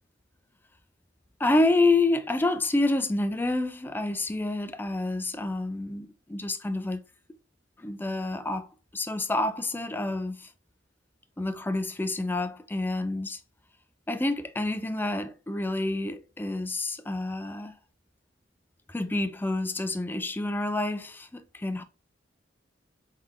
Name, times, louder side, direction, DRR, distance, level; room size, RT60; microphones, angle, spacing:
voice 1, 1.4-7.0 7.8-8.7 8.9-10.5 11.4-13.4 14.1-17.7 18.9-21.8, left 2 dB, 10° left, 0.4 m, -28 dB
3.6 x 3.2 x 3.6 m
head